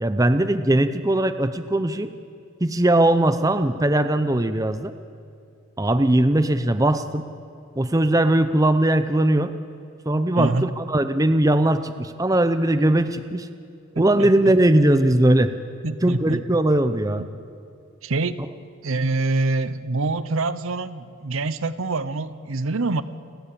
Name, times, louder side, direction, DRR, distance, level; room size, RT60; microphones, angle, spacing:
voice 1, 0.0-2.1 2.6-4.9 5.8-7.3 7.8-9.5 10.1-13.5 14.0-15.5 16.0-17.2, right 1 dB, 15° right, 10 dB, 0.6 m, -20 dB
voice 2, 10.4-10.7 13.0-13.1 13.9-14.5 15.8-16.4 17.2-17.3 18.0-18.5 18.8-23.0, right 3 dB, 70° right, 13 dB, 0.8 m, -25 dB
29.5 x 11.5 x 8.6 m, 2.5 s
head